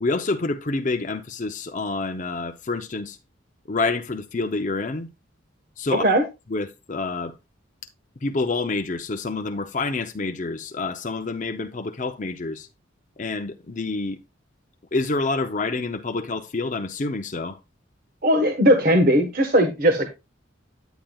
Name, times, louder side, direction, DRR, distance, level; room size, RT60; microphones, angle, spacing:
voice 1, 0.0-3.2 3.7-5.1 5.8-6.1 6.5-7.3 8.2-12.7 13.2-14.2 14.9-17.6, left 3 dB, 40° left, 0.6 m, -27 dB
voice 2, 5.9-6.2 18.2-20.1, equal, 45° right, 1.3 m, -18 dB
10.0 x 9.1 x 2.3 m
head